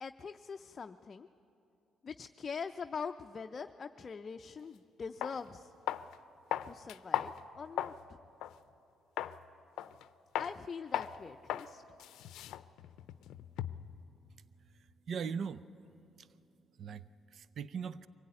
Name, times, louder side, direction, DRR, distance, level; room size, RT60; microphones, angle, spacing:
voice 1, 0.0-1.3 2.0-5.7 6.7-8.2 10.4-11.8, left 5 dB, 40° left, 7 dB, 0.5 m, -43 dB
sound 1, 4.6-4.7 5.2-5.4 5.9-6.1 6.5-8.0 8.4-8.6 9.2-9.4 9.8-10.1 10.4-10.5 10.9-11.2 11.5-11.7 12.0-13.9, left 12 dB, 85° left, 0.5 m, -37 dB
voice 2, 14.7-15.6 16.2-16.3 16.8-18.1, right 6 dB, 60° right, 15 dB, 0.5 m, -40 dB
24.5 x 16.0 x 9.6 m, 2.8 s
cardioid pair, 90°, 0 cm